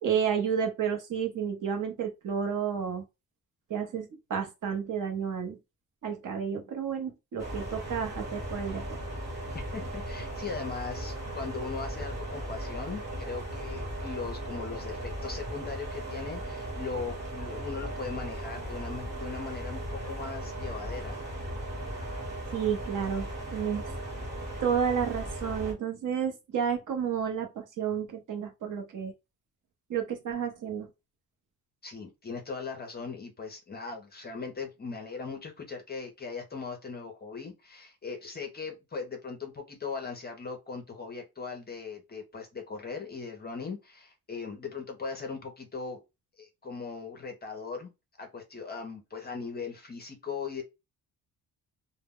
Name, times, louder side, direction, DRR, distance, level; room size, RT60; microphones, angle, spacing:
voice 1, 0.0-3.0 3.7-5.6 6.0-9.0 22.5-23.8 24.6-29.1 29.9-30.9, right 7 dB, 55° right, 0.7 m, -31 dB
sound 1, 7.4-25.7, right 1 dB, 25° right, 1.0 m, -37 dB
voice 2, 9.5-21.2 31.8-46.0 46.4-47.9 48.2-50.6, left 5 dB, 25° left, 0.5 m, -39 dB
2.0 x 2.0 x 3.4 m
cardioid pair, 150°, 38 cm